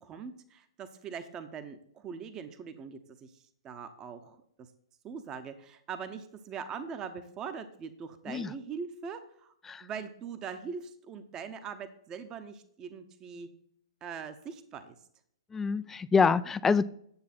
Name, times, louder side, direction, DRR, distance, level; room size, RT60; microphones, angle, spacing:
voice 1, 0.0-4.7 5.0-9.5 9.8-13.5 14.0-14.9, right 6 dB, 25° right, 9 dB, 0.9 m, -42 dB
voice 2, 15.5-16.8, left 5 dB, 10° left, 16 dB, 0.4 m, -26 dB
9.6 x 7.3 x 4.3 m, 0.67 s
hypercardioid pair, 120°, 2 cm